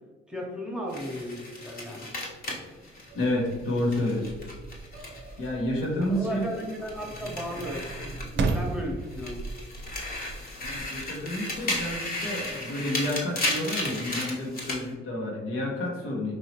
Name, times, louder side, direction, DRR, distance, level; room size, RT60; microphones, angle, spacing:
voice 1, 0.3-2.1 6.2-9.4 16.0-16.1, equal, 5° right, -1 dB, 0.9 m, -35 dB
sound 1, 0.9-5.5 5.8-8.8 9.1-14.8, left 2 dB, 45° left, 1.1 m, -35 dB
sound 2, 2.3-13.3, right 3 dB, 60° right, 0.5 m, -37 dB
voice 2, 3.1-4.3 5.4-6.5 10.6-16.3, left 1 dB, 85° left, -3 dB, 1.2 m, -30 dB
4.8 x 2.8 x 2.9 m, 1.3 s
cardioid pair, 90°, 20 cm